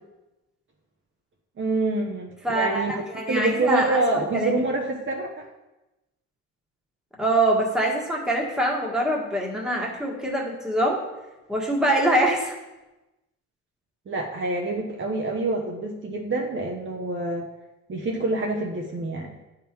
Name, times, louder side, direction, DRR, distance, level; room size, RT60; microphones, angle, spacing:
voice 1, 1.6-2.9 3.3-5.5 14.1-17.5 17.9-19.4, right 2 dB, 40° right, 0 dB, 1.0 m, -26 dB
voice 2, 2.4-4.5 7.2-11.0 11.5-12.5, right 1 dB, ahead, -2 dB, 1.6 m, -24 dB
9.9 x 3.8 x 4.5 m, 1.0 s
cardioid pair, 90°, 30 cm